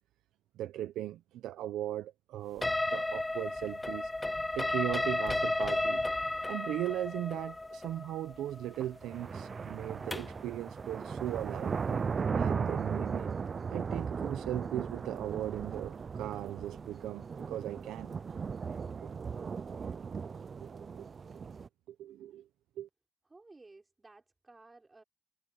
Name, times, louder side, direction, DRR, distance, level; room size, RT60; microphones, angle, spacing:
voice 1, 0.6-4.1 4.5-6.0 6.5-12.0 12.4-13.4 13.7-18.2 19.0-19.1 20.6-21.0 21.9-22.5 22.8-22.9, right 13 dB, 85° right, 0.8 m, -38 dB
sound 1, 2.6-10.4, left 2 dB, 15° left, 0.5 m, -33 dB
sound 2, 8.6-21.7, right 5 dB, 40° right, 0.6 m, -37 dB
voice 2, 23.3-25.0, right 3 dB, 20° right, 5.4 m, -56 dB
cardioid pair, 90°, 0 cm